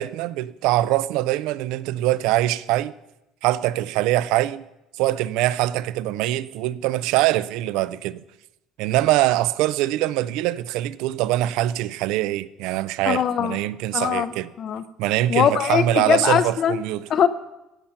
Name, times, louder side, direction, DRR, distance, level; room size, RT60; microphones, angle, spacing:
voice 1, 0.0-2.9 3.4-4.6 5.0-8.2 8.8-14.5 15.0-17.0, right 15 dB, 75° right, 0.4 m, -23 dB
voice 2, 13.1-13.6 13.9-14.8 15.3-16.8 17.1-17.3, left 9 dB, 40° left, 0.5 m, -21 dB
15.5 x 5.9 x 5.6 m
cardioid pair, 175°, 0 cm